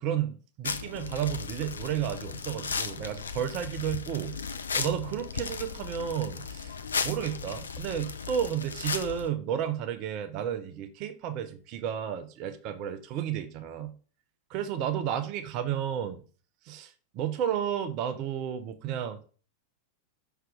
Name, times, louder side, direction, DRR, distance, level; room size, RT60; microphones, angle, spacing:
voice 1, 0.0-4.3 4.7-6.7 7.0-13.9 14.5-16.2 16.6-19.2, right 9 dB, 40° right, 0.7 m, -32 dB
sound 1, 0.6-9.3, left 5 dB, 70° left, 0.5 m, -35 dB
5.8 x 3.4 x 4.9 m
figure-of-eight pair, 90°, 0 cm